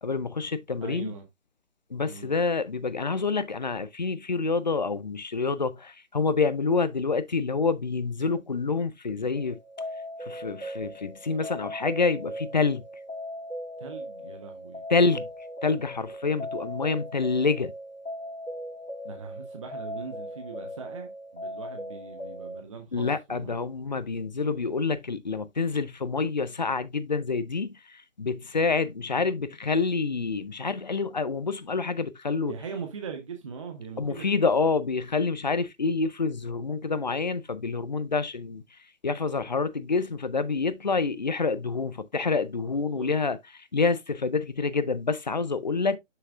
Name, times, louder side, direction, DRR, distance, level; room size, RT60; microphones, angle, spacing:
voice 1, 0.0-1.1 1.9-9.6 10.2-12.8 14.9-15.3 15.6-17.7 22.9-32.5 34.0-38.6 39.0-46.0, left 4 dB, 35° left, 0.5 m, -27 dB
voice 2, 0.8-1.3 2.0-2.4 13.8-14.8 19.0-23.6 32.5-34.5 42.6-43.1, right 6 dB, 25° right, 0.8 m, -41 dB
sound 1, 9.4-22.6, equal, 80° left, 2.6 m, -39 dB
7.7 x 6.4 x 2.4 m
figure-of-eight pair, 150°, 39 cm